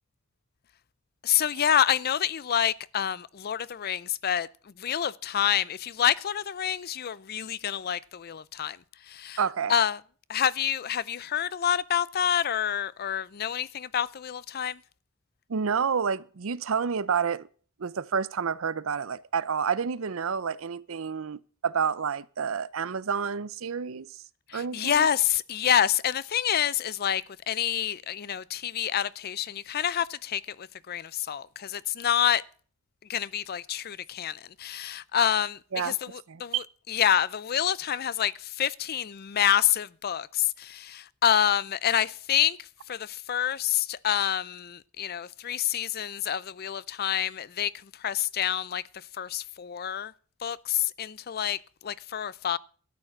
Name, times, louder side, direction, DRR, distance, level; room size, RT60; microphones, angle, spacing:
voice 1, 1.2-4.5 4.8-8.8 9.1-9.4 9.7-10.0 10.3-14.8 24.5-32.4 33.1-50.1 50.4-52.6, left 9 dB, 50° left, 0.5 m, -27 dB
voice 2, 9.4-9.7 15.5-17.5 17.8-24.1 24.5-25.1 35.7-36.0 36.3-36.6, right 6 dB, 75° right, 0.6 m, -29 dB
13.0 x 9.1 x 5.8 m
head